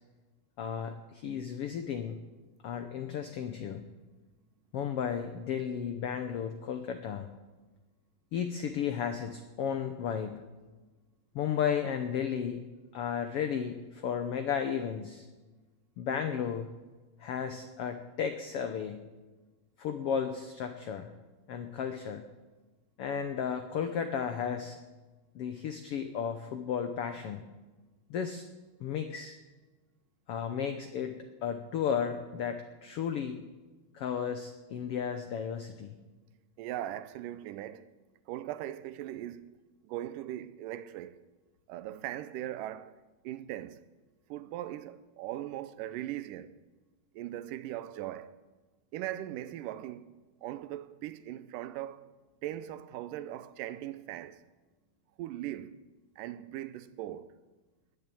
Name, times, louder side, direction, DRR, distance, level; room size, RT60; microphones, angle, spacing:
voice 1, 0.6-2.2 2.6-3.8 4.7-7.3 8.3-10.4 11.3-12.6 12.9-15.2 16.0-16.7 17.2-19.0 19.8-21.1 21.5-22.2 23.0-24.8 25.3-27.4 28.1-28.5 28.8-29.4 30.3-33.4 33.9-35.9, left 7 dB, 85° left, 1.3 m, -34 dB
voice 2, 36.6-37.9 38.3-39.5 39.8-41.2 41.7-43.0 43.2-43.8 44.3-46.5 47.1-48.4 48.9-50.1 50.4-52.0 52.4-54.4 55.2-55.7 56.2-57.3, right 13 dB, 90° right, 2.3 m, -39 dB
20.5 x 6.9 x 8.5 m
omnidirectional pair, 3.8 m